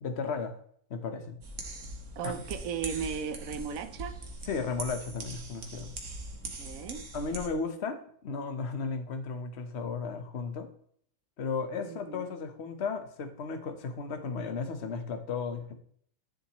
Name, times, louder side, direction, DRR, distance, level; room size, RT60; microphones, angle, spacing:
voice 1, 0.0-0.5 0.9-1.4 2.2-2.3 4.5-5.9 7.1-8.0 8.2-10.7 11.4-15.7, left 5 dB, 40° left, 7 dB, 1.1 m, -34 dB
sound 1, 1.4-7.5, right 2 dB, 40° right, 1.6 m, -41 dB
voice 2, 2.2-4.2 6.6-7.1 11.8-12.2, right 7 dB, 60° right, 10 dB, 0.9 m, -36 dB
11.0 x 6.8 x 3.1 m, 0.62 s
omnidirectional pair, 2.2 m